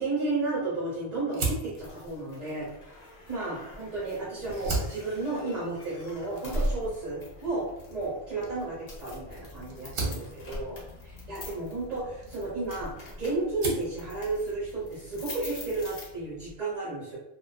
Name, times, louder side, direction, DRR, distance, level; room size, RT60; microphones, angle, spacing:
voice 1, 0.0-2.9 3.3-17.2, right 3 dB, 40° right, -9 dB, 0.8 m, -33 dB
Fire, 1.3-3.9 4.4-13.0 13.3-14.0, right 3 dB, 65° right, 0.9 m, -38 dB
sound 1, 1.6-16.5, equal, 70° left, 0.9 m, -41 dB
2.5 x 2.3 x 2.4 m, 0.85 s
omnidirectional pair, 1.1 m